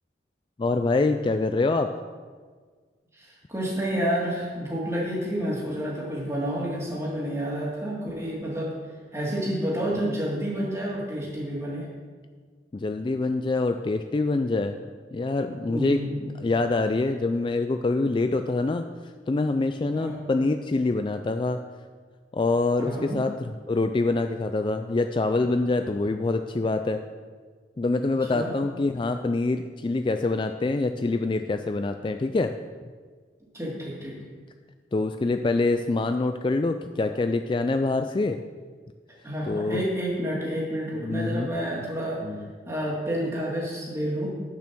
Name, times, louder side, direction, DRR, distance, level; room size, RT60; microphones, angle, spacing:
voice 1, 0.6-1.9 12.7-14.8 15.1-18.8 19.3-21.6 22.3-23.3 23.7-27.0 27.8-32.5 34.9-38.4 39.5-39.8 40.9-41.5 42.2-42.5, left 3 dB, 30° left, 7 dB, 0.3 m, -25 dB
voice 2, 3.1-8.7 9.1-11.9 15.7-16.1 19.9-20.2 22.8-23.3 28.3-28.5 33.5-34.2 39.2-42.3 42.7-44.3, equal, 15° right, -4 dB, 2.3 m, -29 dB
8.9 x 6.9 x 6.0 m, 1.5 s
head